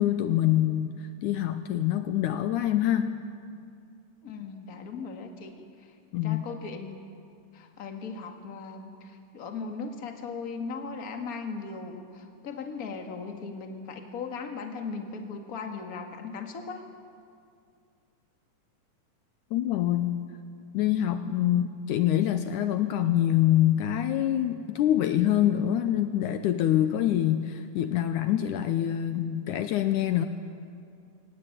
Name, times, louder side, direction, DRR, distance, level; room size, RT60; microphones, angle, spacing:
voice 1, 0.0-3.1 6.1-6.4 19.5-20.2 20.7-30.3, left 12 dB, 75° left, 9 dB, 2.1 m, -25 dB
voice 2, 4.2-6.0 6.2-7.0 7.5-16.8, left 4 dB, 35° left, 4 dB, 1.8 m, -38 dB
23.5 x 18.5 x 9.1 m, 2.4 s
omnidirectional pair, 3.8 m